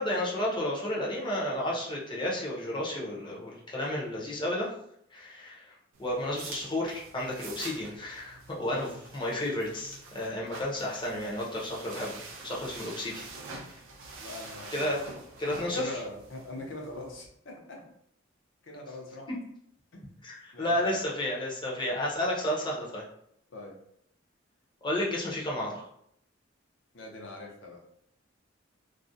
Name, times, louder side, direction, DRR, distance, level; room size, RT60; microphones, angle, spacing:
voice 1, 0.0-4.7 5.1-5.7 6.0-12.2 12.4-13.2 14.7-15.0 15.4-16.0 19.3-19.4 20.2-23.0 24.8-25.9, left 1 dB, 25° left, -4 dB, 0.6 m, -32 dB
sound 1, 5.9-17.3, right 3 dB, 80° right, 0.4 m, -46 dB
voice 2, 14.2-15.1 15.5-17.8 18.6-19.3 19.9-20.1 20.5-21.0 23.5-23.8 26.9-27.8, left 2 dB, 70° left, 0 dB, 0.6 m, -42 dB
2.4 x 2.1 x 2.6 m, 0.71 s
head